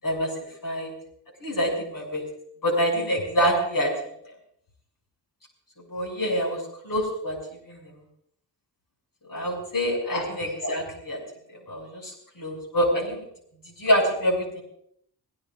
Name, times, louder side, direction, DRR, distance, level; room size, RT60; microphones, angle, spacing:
voice 1, 1.4-2.2 2.6-3.9 5.9-7.4 7.6-7.9 9.3-11.2 11.5-13.2 13.7-14.6, equal, 50° left, 0 dB, 6.8 m, -26 dB
26.5 x 17.0 x 2.5 m, 0.69 s
cardioid pair, 85°, 42 cm